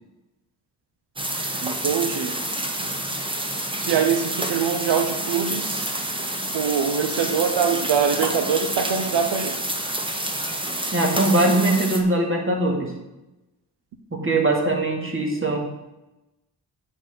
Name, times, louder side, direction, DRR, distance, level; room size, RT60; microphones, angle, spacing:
sound 1, 1.2-12.0, right 1 dB, 10° right, 1.1 m, -28 dB
voice 1, 1.6-2.3 3.8-5.9 6.5-9.6, right 7 dB, 80° right, 6 dB, 0.8 m, -23 dB
voice 2, 10.9-12.9 14.1-15.6, right 2 dB, 30° right, 1 dB, 2.2 m, -21 dB
8.6 x 4.3 x 6.6 m, 0.99 s
cardioid pair, 75°, 41 cm